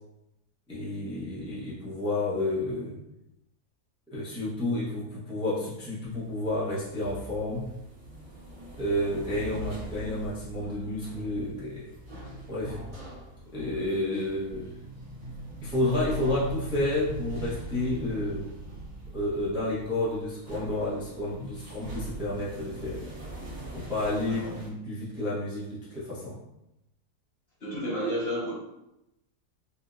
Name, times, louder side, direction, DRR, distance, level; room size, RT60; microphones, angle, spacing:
voice 1, 0.7-3.0 4.1-7.7 8.8-11.9 12.5-12.8 13.5-14.7 15.6-18.5 19.1-23.0 23.7-26.4, left 1 dB, 5° right, -9 dB, 0.5 m, -30 dB
sound 1, 6.0-24.7, right 2 dB, 60° right, 1.5 m, -41 dB
voice 2, 24.2-24.5 27.6-28.5, equal, 50° left, -7 dB, 0.8 m, -31 dB
4.2 x 2.1 x 2.5 m, 0.89 s
omnidirectional pair, 1.7 m